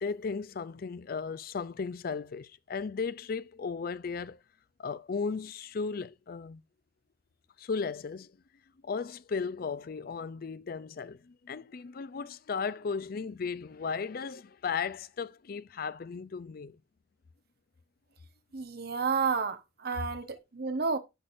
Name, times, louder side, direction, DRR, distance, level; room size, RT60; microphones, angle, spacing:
voice 1, 0.0-4.4 4.8-6.6 7.6-8.3 8.8-16.8, left 5 dB, 50° left, 0.4 m, -35 dB
voice 2, 18.5-21.0, right 5 dB, 55° right, 1.0 m, -31 dB
10.0 x 6.0 x 2.6 m
head